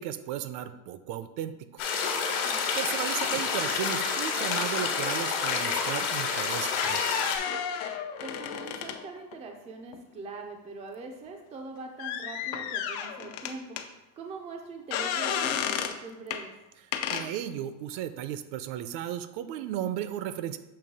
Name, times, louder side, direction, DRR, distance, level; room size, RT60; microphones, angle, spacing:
voice 1, 0.0-1.8 2.8-7.2 17.1-20.6, right 11 dB, 70° right, 11 dB, 0.6 m, -35 dB
sound 1, 1.8-7.4, left 5 dB, 60° left, 1.3 m, -29 dB
sound 2, 2.9-3.7 4.5-4.8 5.5-5.7 6.6-9.4 9.9-10.0 12.0-13.9 14.9-16.0 16.3-16.4 16.9-17.3, left 9 dB, 80° left, 0.7 m, -32 dB
voice 2, 8.2-13.8 14.2-16.5, right 3 dB, 15° right, 2 dB, 0.3 m, -42 dB
6.8 x 3.0 x 5.3 m, 0.96 s
cardioid pair, 170°, 45 cm